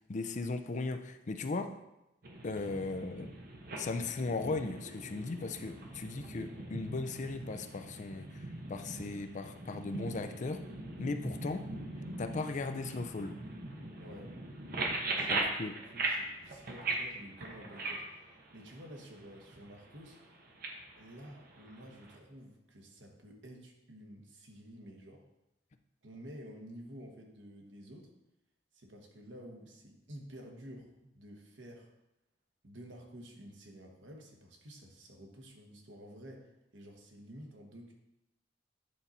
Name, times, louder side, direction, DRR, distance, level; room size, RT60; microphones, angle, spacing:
voice 1, 0.1-1.8 2.4-3.3 3.8-8.3 8.7-10.7 11.0-11.7 12.2-13.3 15.3-15.8, left 3 dB, 45° left, 8 dB, 0.5 m, -37 dB
sound 1, 2.2-22.2, right 2 dB, 55° right, 1.1 m, -41 dB
voice 2, 14.0-14.3 15.0-15.6 15.9-18.2 18.5-20.2 21.0-25.2 26.0-28.1 28.7-31.9 32.6-37.9, equal, 90° right, 1 dB, 1.4 m, -51 dB
9.3 x 4.0 x 4.3 m, 0.89 s
head